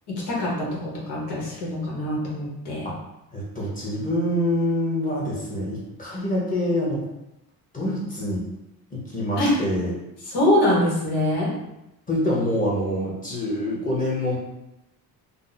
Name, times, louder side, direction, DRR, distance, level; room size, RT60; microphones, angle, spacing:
voice 1, 0.1-2.9 9.4-9.6 10.3-11.5, left 1 dB, 85° left, -4 dB, 1.1 m, -24 dB
voice 2, 3.3-7.0 7.7-8.4 8.9-10.0 12.1-14.4, left 1 dB, 20° left, -5 dB, 0.9 m, -26 dB
2.6 x 2.1 x 3.9 m, 0.91 s
cardioid pair, 130°, 39 cm